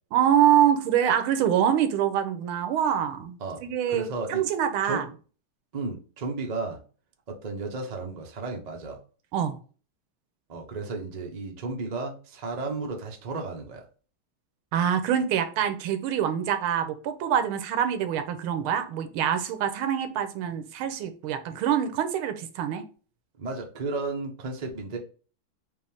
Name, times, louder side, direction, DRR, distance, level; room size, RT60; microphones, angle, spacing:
voice 1, 0.1-5.1 9.3-9.6 14.7-22.8, right 9 dB, 85° right, 1.6 m, -25 dB
voice 2, 3.4-4.4 4.8-5.0 5.7-6.8 7.3-9.0 10.5-13.8 23.4-25.0, right 3 dB, 60° right, 0.4 m, -33 dB
5.1 x 2.5 x 3.5 m
omnidirectional pair, 2.3 m